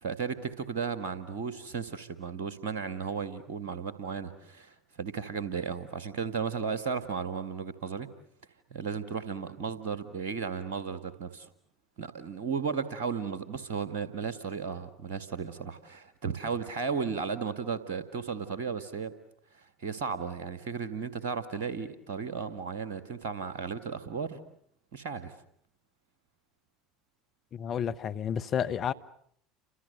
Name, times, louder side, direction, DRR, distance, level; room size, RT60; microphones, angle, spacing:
voice 1, 0.0-8.1 8.7-11.5 12.0-19.1 19.5-24.4 24.9-25.3, right 5 dB, 70° right, 2.0 m, -35 dB
voice 2, 27.5-28.9, left 8 dB, 45° left, 1.3 m, -31 dB
30.0 x 26.0 x 6.8 m
hypercardioid pair, 70°, 0 cm